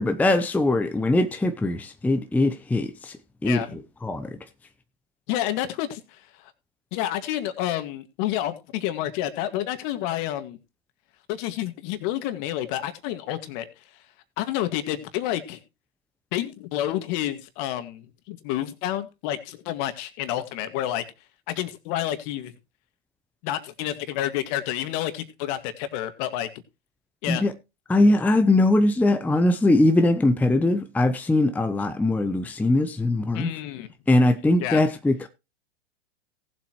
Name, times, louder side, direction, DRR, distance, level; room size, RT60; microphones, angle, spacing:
voice 1, 0.0-3.2 3.4-4.4 27.3-27.5 27.9-33.5 34.1-35.3, left 2 dB, 5° left, 0.7 m, -21 dB
voice 2, 3.4-3.8 5.3-6.5 6.9-10.6 11.3-13.7 14.4-15.6 16.3-21.0 21.5-22.5 23.4-26.5 27.2-27.4 33.3-33.9 34.6-34.8, left 12 dB, 45° left, 2.0 m, -29 dB
18.5 x 7.8 x 3.1 m
hypercardioid pair, 110°, 33 cm